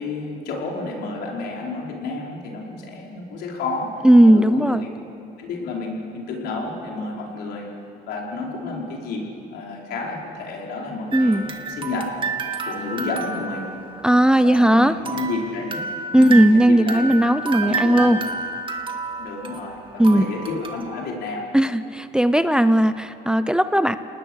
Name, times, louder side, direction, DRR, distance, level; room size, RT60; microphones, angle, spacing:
voice 1, 0.0-4.9 5.4-7.7 8.1-9.2 9.5-12.1 12.6-13.7 14.4-15.8 16.1-18.2 19.2-21.5, left 3 dB, 80° left, -2 dB, 5.0 m, -30 dB
voice 2, 4.0-4.8 11.1-11.5 14.0-15.0 16.1-18.2 20.0-20.3 21.5-24.0, right 1 dB, 5° right, 11 dB, 0.6 m, -16 dB
sound 1, 11.1-14.6 15.1-21.0, right 4 dB, 30° right, 2.0 m, -30 dB
29.0 x 19.5 x 6.5 m, 2.8 s
cardioid pair, 110°, 17 cm